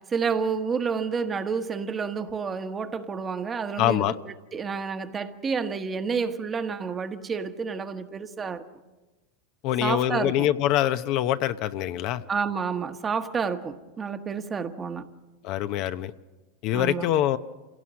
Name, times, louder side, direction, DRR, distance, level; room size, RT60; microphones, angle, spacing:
voice 1, 0.0-8.6 9.8-10.5 12.3-15.1 16.7-17.1, right 5 dB, 25° right, 1.3 m, -30 dB
voice 2, 3.8-4.2 9.6-12.2 15.4-16.1 16.6-17.4, left 12 dB, 55° left, 0.8 m, -24 dB
27.0 x 17.5 x 6.4 m
hypercardioid pair, 110°, 0 cm